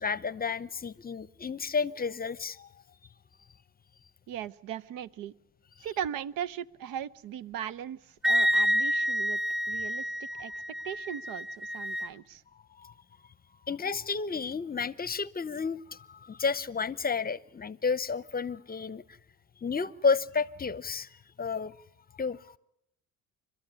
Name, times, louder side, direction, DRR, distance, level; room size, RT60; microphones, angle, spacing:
voice 1, 0.0-2.7 12.8-12.9 13.7-19.0 19.6-21.1 21.4-21.7 22.2-22.6, left 5 dB, 25° left, 0.8 m, -31 dB
voice 2, 4.3-5.3 5.8-9.4 9.7-10.5 10.8-12.4, right 9 dB, 70° right, 0.9 m, -38 dB
Wind instrument woodwind instrument, 8.2-12.1, equal, ahead, 1.1 m, -28 dB
29.5 x 13.0 x 9.7 m
supercardioid pair, 85°, 35 cm